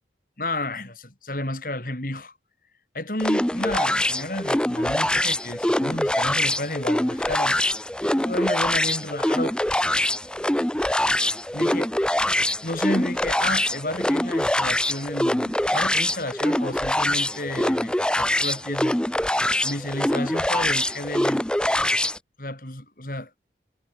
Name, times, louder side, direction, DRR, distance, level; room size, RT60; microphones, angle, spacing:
voice 1, 0.4-2.3 2.9-7.6 8.2-9.6 11.5-11.9 12.6-19.0 19.6-21.4 22.4-23.5, left 1 dB, 50° left, 5.4 m, -31 dB
sound 1, 3.2-22.2, left 1 dB, 5° left, 0.6 m, -24 dB
head